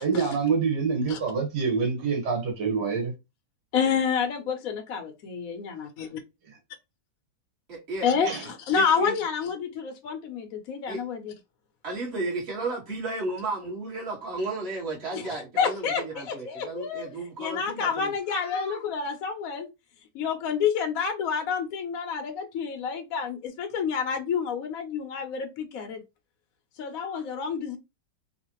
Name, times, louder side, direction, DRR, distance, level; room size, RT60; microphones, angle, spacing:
voice 1, 0.0-3.1 8.3-8.5, right 5 dB, 75° right, 1.8 m, -26 dB
voice 2, 3.7-6.1 8.0-8.3 8.7-11.3 15.1-15.2 15.6-17.1 17.4-19.7 20.1-26.0 26.8-27.8, left 6 dB, 60° left, 1.0 m, -28 dB
voice 3, 7.7-8.3 8.7-9.2 10.9-11.0 11.8-18.1, right 2 dB, 35° right, 2.0 m, -33 dB
4.0 x 2.5 x 2.9 m
omnidirectional pair, 1.9 m